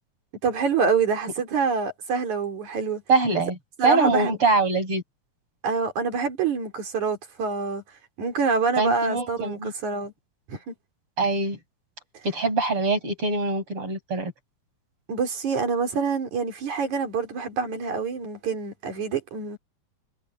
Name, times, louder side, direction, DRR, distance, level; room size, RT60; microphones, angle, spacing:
voice 1, 0.4-3.0 3.8-4.3 5.6-7.8 8.2-10.1 10.5-10.7 15.1-19.6, right 5 dB, 70° right, 4.9 m, -26 dB
voice 2, 3.1-3.6 3.8-5.0 8.8-9.7 11.2-11.6 12.2-14.3, right 3 dB, 45° right, 8.7 m, -23 dB
omnidirectional pair, 3.5 m